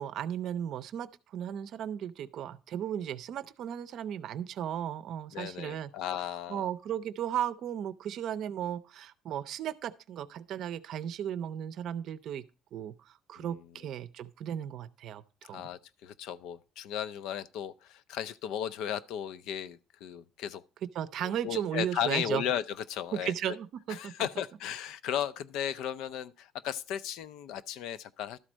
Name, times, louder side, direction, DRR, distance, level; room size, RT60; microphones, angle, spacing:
voice 1, 0.0-5.9 6.5-12.4 12.7-15.7 20.8-22.4 23.1-24.1, right 10 dB, 50° right, 0.6 m, -35 dB
voice 2, 5.3-6.7 13.4-13.6 15.5-20.6 21.2-23.6 23.9-28.4, left 9 dB, 75° left, 0.5 m, -35 dB
12.5 x 4.4 x 6.2 m
cardioid pair, 175°, 0 cm